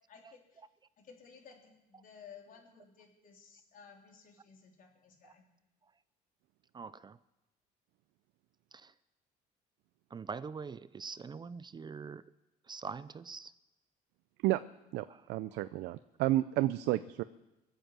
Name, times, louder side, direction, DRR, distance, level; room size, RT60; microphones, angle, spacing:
voice 1, 0.1-0.6 1.0-5.5, left 6 dB, 55° left, 1 dB, 3.7 m, -56 dB
voice 2, 6.7-7.2 8.7-8.9 10.1-12.2 12.6-13.5 15.1-15.3 15.5-15.6, right 5 dB, 25° right, 16 dB, 0.5 m, -44 dB
voice 3, 14.9-17.2, right 16 dB, 85° right, 14 dB, 0.5 m, -31 dB
23.5 x 8.1 x 7.5 m, 1.0 s
cardioid pair, 110°, 17 cm